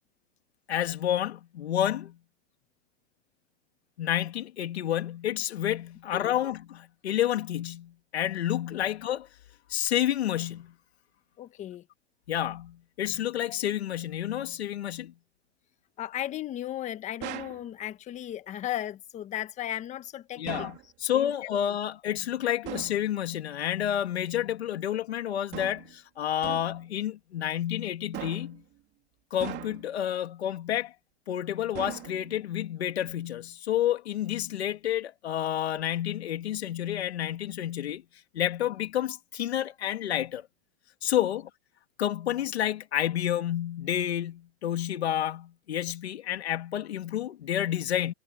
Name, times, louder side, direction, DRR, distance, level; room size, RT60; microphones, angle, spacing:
voice 1, 0.7-2.2 4.0-9.3 9.7-10.7 12.3-15.1 20.4-20.7 21.0-28.6 29.3-30.9 31.3-38.0 38.3-40.4 41.0-41.5 42.0-48.1, left 11 dB, 90° left, 2.7 m, -29 dB
voice 2, 11.4-11.8 16.0-20.7 21.1-21.3 41.2-41.3, left 12 dB, 25° left, 1.3 m, -36 dB
sound 1, 17.2-17.6 20.5-20.9 22.6-23.0 25.5-25.9 26.4-26.8 28.1-28.6 29.4-30.0 31.7-32.4, right 16 dB, 35° right, 3.1 m, -39 dB
supercardioid pair, 150°, 31 cm